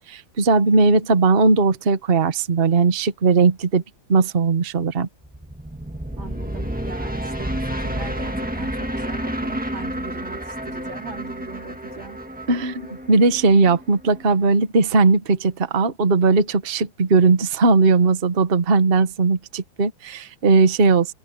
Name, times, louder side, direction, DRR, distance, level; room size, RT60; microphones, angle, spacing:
voice 1, 0.1-3.8 4.1-5.1 12.5-12.8 13.1-21.1, right 4 dB, 35° right, 1.3 m, -18 dB
sound 1, 5.2-14.4, right 1 dB, 5° right, 1.4 m, -30 dB
voice 2, 6.2-12.2, right 5 dB, 85° right, 4.7 m, -40 dB
open air
omnidirectional pair, 2.1 m